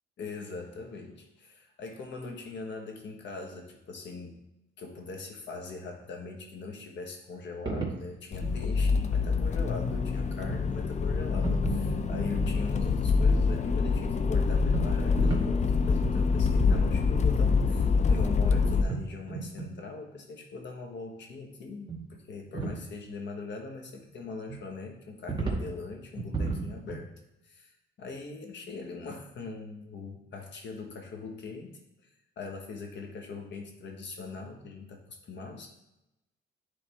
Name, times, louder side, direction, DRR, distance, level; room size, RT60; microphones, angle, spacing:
voice 1, 0.2-4.4 4.8-27.1 27.4-27.7 28.0-31.8 32.4-35.7, left 4 dB, 65° left, 3 dB, 1.5 m, -41 dB
sound 1, 7.7-8.0 8.4-8.6 9.1-9.3 9.8-10.0 10.5-10.7 11.0-11.1 11.4-12.5 14.6-15.7 16.0-16.2 16.6-16.7 17.0-17.2 17.5-17.6 17.8-17.9 18.7-19.0 19.3-19.7 21.9-22.0 22.3-22.8 24.5-24.6 25.3-25.7 26.1-27.0, right 4 dB, 25° right, 2.0 m, -34 dB
Accelerating revving vroom, 8.3-18.8, left 4 dB, 35° left, 0.5 m, -26 dB
10.0 x 3.9 x 3.6 m, 0.93 s
cardioid pair, 90°, 20 cm